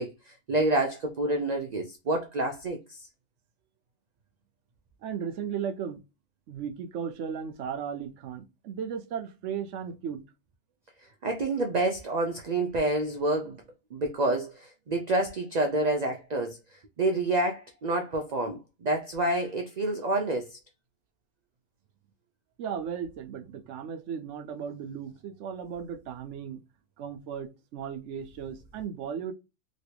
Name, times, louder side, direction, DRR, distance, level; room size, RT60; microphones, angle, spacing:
voice 1, 0.0-3.1 11.2-13.6 13.9-20.6, right 2 dB, 55° right, 0.5 m, -28 dB
voice 2, 5.0-6.0 6.5-10.2 22.6-26.6 27.0-29.3, right 7 dB, 70° right, 0.9 m, -36 dB
3.2 x 2.8 x 2.8 m
omnidirectional pair, 1.4 m